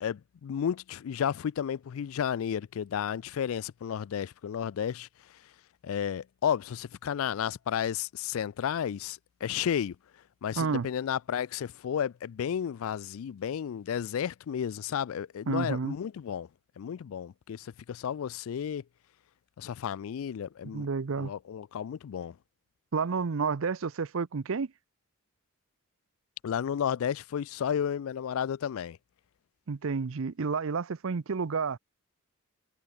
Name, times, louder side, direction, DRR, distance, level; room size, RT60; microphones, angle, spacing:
voice 1, 0.0-5.4 5.8-10.0 10.4-16.5 16.8-18.8 19.6-20.9 21.2-22.4 26.4-29.0, left 8 dB, 65° left, 0.3 m, -32 dB
voice 2, 10.6-10.9 15.5-15.9 20.6-21.3 22.9-24.7 29.7-31.8, right 5 dB, 60° right, 0.6 m, -30 dB
head